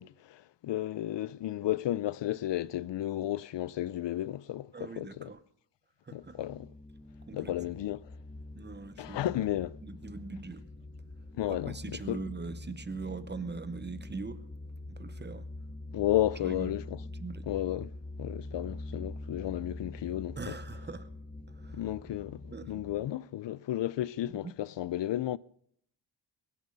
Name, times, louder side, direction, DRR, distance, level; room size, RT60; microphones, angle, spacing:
voice 1, 0.0-5.3 6.1-6.7 7.3-8.1 9.0-9.8 11.4-12.2 15.9-17.0 17.5-17.9 18.2-20.5 21.7-25.4, left 13 dB, 70° left, 0.5 m, -33 dB
voice 2, 4.7-5.4 6.0-6.4 7.3-7.5 8.5-9.4 9.8-10.6 11.5-14.4 14.9-15.5 16.4-16.8 17.0-17.5 20.4-21.1 21.5-21.9 22.5-22.7 24.3-24.5, right 4 dB, 25° right, 0.7 m, -41 dB
sound 1, 6.2-23.1, left 2 dB, 25° left, 1.3 m, -44 dB
22.0 x 10.0 x 5.2 m
wide cardioid pair, 155°, 45 cm